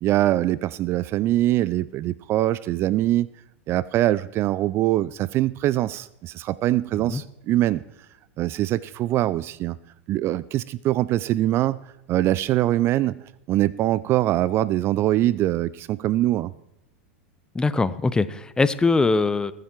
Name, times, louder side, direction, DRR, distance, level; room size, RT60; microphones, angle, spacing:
voice 1, 0.0-3.3 3.7-7.8 8.4-9.8 10.1-11.8 12.1-13.2 13.5-16.5, right 14 dB, 35° right, 0.3 m, -23 dB
voice 2, 17.5-19.5, left 3 dB, 10° left, 0.6 m, -22 dB
20.5 x 7.5 x 4.5 m
hypercardioid pair, 95°, 7 cm